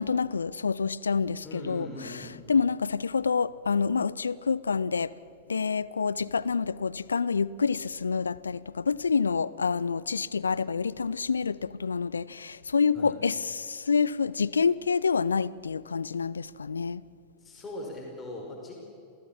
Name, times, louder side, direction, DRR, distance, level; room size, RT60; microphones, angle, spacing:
voice 1, 0.0-2.2 2.5-5.1 5.5-17.0, left 5 dB, 75° left, 0.5 m, -27 dB
voice 2, 1.4-2.3 12.9-13.1 17.4-18.8, left 1 dB, 20° left, 5.1 m, -40 dB
28.0 x 17.0 x 7.2 m
figure-of-eight pair, 90°, 0 cm